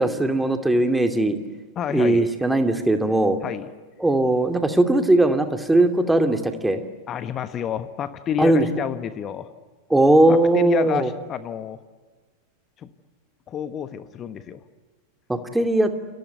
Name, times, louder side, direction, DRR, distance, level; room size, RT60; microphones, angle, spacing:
voice 1, 0.0-1.4 1.9-3.4 4.0-6.8 8.4-8.7 9.9-11.1 15.3-15.9, right 2 dB, 5° right, 6 dB, 2.6 m, -19 dB
voice 2, 1.8-2.2 3.4-3.7 7.1-9.5 10.3-11.8 12.8-12.9 13.5-14.6, left 9 dB, 30° left, 12 dB, 1.3 m, -29 dB
29.5 x 24.0 x 8.2 m, 1.4 s
figure-of-eight pair, 90°, 0 cm